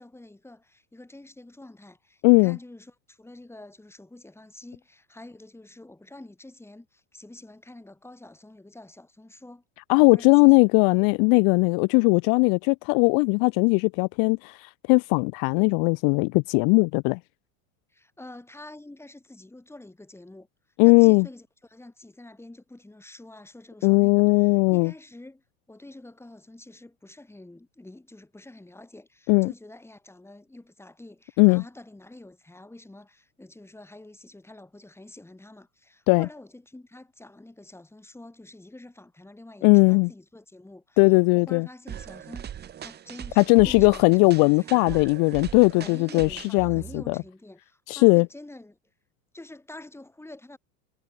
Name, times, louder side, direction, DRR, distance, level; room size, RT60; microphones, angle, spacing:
voice 1, 0.0-9.6 10.1-11.0 17.9-20.5 20.8-44.0 44.4-45.1 45.7-48.8 49.3-50.6, left 2 dB, 5° left, 7.8 m, -47 dB
voice 2, 2.2-2.6 9.9-17.2 20.8-21.3 23.8-24.9 29.3-29.5 31.4-31.6 36.1-36.3 39.6-40.1 41.0-41.7 43.4-47.2 47.9-48.3, left 38 dB, 55° left, 0.7 m, -19 dB
sound 1, 41.9-47.3, right 9 dB, 25° right, 1.0 m, -40 dB
supercardioid pair, 120°, 41 cm